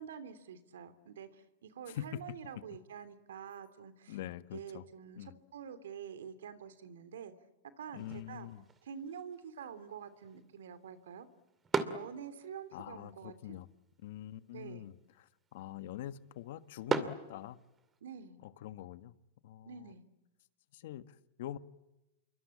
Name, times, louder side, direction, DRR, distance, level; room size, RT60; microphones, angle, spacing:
voice 1, 0.0-4.2 4.5-7.3 7.8-8.5 8.8-11.3 11.9-13.6 14.5-14.9 18.0-18.4 19.6-20.0, right 7 dB, 85° right, 12 dB, 3.1 m, -47 dB
voice 2, 4.1-4.8 5.2-5.4 7.9-8.6 12.7-13.7 14.0-17.6 18.4-19.1 19.4-19.9 20.7-21.6, left 13 dB, 65° left, 12 dB, 1.4 m, -45 dB
sound 1, 8.0-18.0, right 5 dB, 20° right, 2.6 m, -42 dB
28.5 x 24.0 x 8.6 m, 1.0 s
hypercardioid pair, 135°, 0 cm